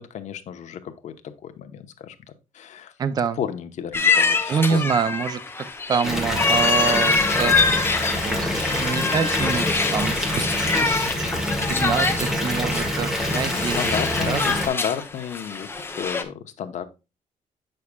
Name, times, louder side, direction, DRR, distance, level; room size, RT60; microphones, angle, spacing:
voice 1, 0.0-2.2 2.5-2.9 3.4-5.0 13.3-16.8, left 8 dB, 55° left, 9 dB, 0.9 m, -32 dB
voice 2, 3.0-3.4 4.5-7.6 8.2-13.9 14.3-14.6, right 6 dB, 30° right, 13 dB, 0.4 m, -26 dB
sound 1, 3.9-16.2, left 4 dB, 15° left, 0.7 m, -25 dB
Water tap faucet / Bathtub (filling or washing) / Fill (with liquid), 6.0-14.7, left 1 dB, 5° right, 1.6 m, -26 dB
8.4 x 6.5 x 2.2 m, 0.28 s
cardioid pair, 160°, 14 cm